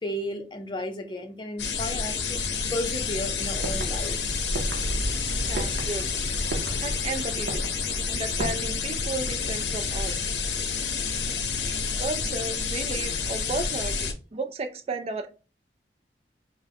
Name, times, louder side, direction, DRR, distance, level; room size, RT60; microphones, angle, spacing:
voice 1, 0.0-2.4 2.7-4.5 11.5-11.6, left 1 dB, 25° left, 0.5 m, -34 dB
sound 1, 1.6-14.1, left 5 dB, 85° left, 0.6 m, -29 dB
sound 2, 3.5-8.5, right 1 dB, 75° right, 0.7 m, -34 dB
voice 2, 5.5-6.2 6.8-7.6 8.1-10.2 11.4-15.3, right 3 dB, 35° right, 0.4 m, -34 dB
5.0 x 2.1 x 2.8 m
head